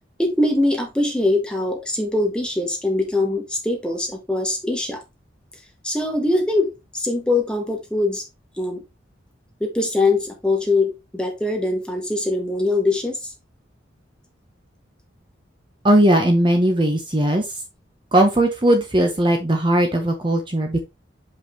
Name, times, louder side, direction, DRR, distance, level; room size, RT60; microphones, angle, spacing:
voice 1, 0.2-5.0 5.8-8.2 8.6-8.8 9.6-13.3, left 2 dB, 5° left, 1.3 m, -22 dB
voice 2, 15.8-17.4 18.1-20.8, right 1 dB, 25° right, 0.9 m, -18 dB
5.7 x 5.2 x 3.2 m
head